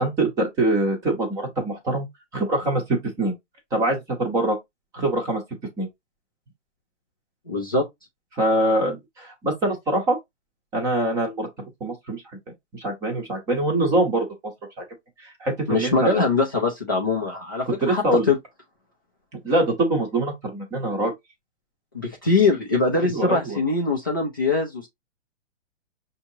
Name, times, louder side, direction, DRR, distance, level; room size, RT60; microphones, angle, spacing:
voice 1, 0.0-2.1 2.3-3.3 3.7-4.6 4.9-5.4 5.8-5.9 8.3-10.2 10.7-11.5 11.8-12.2 12.7-14.3 15.2-16.2 17.8-18.3 19.4-21.1 23.0-23.6, right 1 dB, 10° right, 0.7 m, -24 dB
voice 2, 7.5-7.9 15.7-18.4 21.9-24.9, left 3 dB, 20° left, 0.3 m, -22 dB
5.7 x 2.8 x 2.7 m
hypercardioid pair, 160°, 36 cm